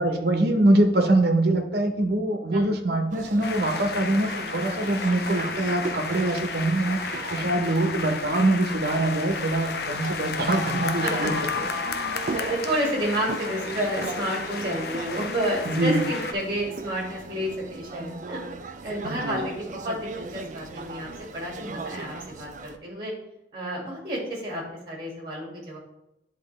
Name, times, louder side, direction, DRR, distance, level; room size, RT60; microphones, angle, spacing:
voice 1, 0.0-7.0 7.3-11.3 15.6-16.0 19.0-19.5, right 1 dB, 60° right, 4 dB, 1.0 m, -23 dB
sound 1, 3.1-22.8, right 3 dB, 40° right, 0.4 m, -39 dB
sound 2, 3.4-16.3, left 5 dB, 55° left, 0.5 m, -33 dB
voice 2, 12.3-18.4 18.8-23.1 23.5-25.8, right 1 dB, 25° right, -2 dB, 2.0 m, -30 dB
10.5 x 3.9 x 3.3 m, 0.88 s
head